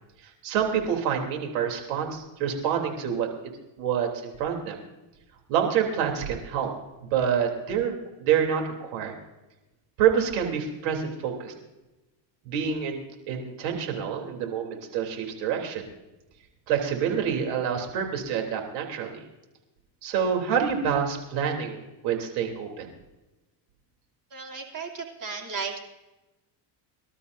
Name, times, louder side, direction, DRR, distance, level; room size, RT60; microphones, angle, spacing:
voice 1, 0.4-3.3 3.8-4.8 5.5-6.7 7.0-7.9 8.2-9.1 10.0-11.5 12.4-13.0 13.3-15.9 16.7-19.2 20.0-22.9, right 8 dB, 85° right, 2 dB, 3.5 m, -27 dB
voice 2, 24.3-25.8, right 5 dB, 40° right, 2 dB, 3.1 m, -35 dB
25.5 x 12.5 x 2.7 m, 1.0 s
supercardioid pair, 100°, 50 cm